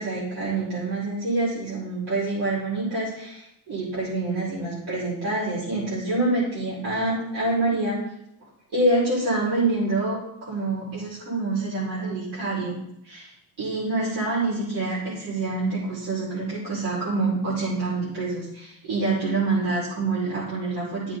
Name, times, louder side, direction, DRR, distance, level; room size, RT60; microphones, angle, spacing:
voice 1, 0.0-8.0 8.7-12.8 13.0-13.3 13.6-21.2, right 2 dB, 80° right, -9 dB, 5.1 m, -26 dB
13.5 x 7.4 x 4.1 m, 0.80 s
cardioid pair, 140°, 39 cm